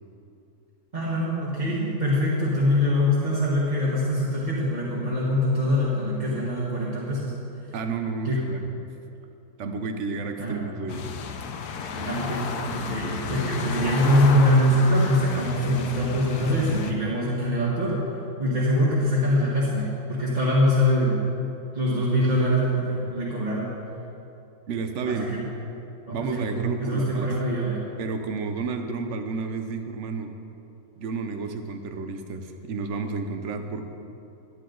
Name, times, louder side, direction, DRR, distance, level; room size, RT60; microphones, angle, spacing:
voice 1, 0.9-7.4 8.2-8.4 10.4-10.6 11.9-18.0 18.4-21.2 21.7-23.7 25.0-25.4 26.1-27.8, equal, 30° right, -7 dB, 1.5 m, -23 dB
voice 2, 7.7-8.6 9.6-11.1 24.7-25.3 26.1-27.3 28.0-30.3 31.0-33.9, right 4 dB, 55° right, 6 dB, 1.0 m, -31 dB
sound 1, 10.9-16.9, left 5 dB, 90° left, 1.3 m, -32 dB
12.5 x 9.6 x 3.9 m, 2.9 s
omnidirectional pair, 1.6 m